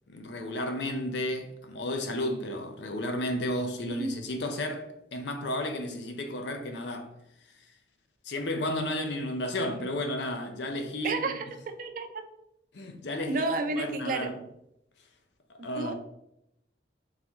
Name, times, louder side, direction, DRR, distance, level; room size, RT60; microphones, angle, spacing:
voice 1, 0.1-7.1 8.2-11.4 12.7-14.4 15.6-15.9, left 1 dB, 75° left, 0.6 m, -33 dB
voice 2, 11.0-12.1 13.3-14.3 15.6-15.9, right 3 dB, 45° right, 0.4 m, -31 dB
3.9 x 3.4 x 3.0 m
head